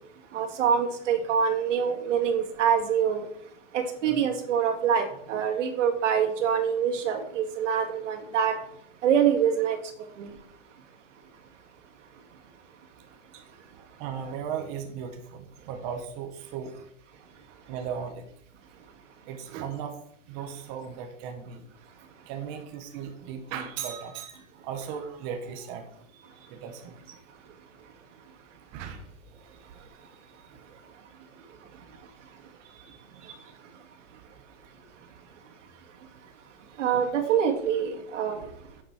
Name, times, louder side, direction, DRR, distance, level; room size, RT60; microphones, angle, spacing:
voice 1, 0.3-3.3 3.7-8.6 9.0-9.8 10.2-10.3 36.8-38.4, right 8 dB, 65° right, 4 dB, 2.1 m, -25 dB
voice 2, 14.0-16.7 17.7-18.2 19.3-19.9 20.3-21.6 22.3-25.9 26.1-26.2 26.5-26.9 28.7-29.0 32.6-33.0, right 7 dB, 15° right, 5 dB, 0.4 m, -37 dB
9.5 x 6.6 x 4.5 m, 0.70 s
supercardioid pair, 160°, 39 cm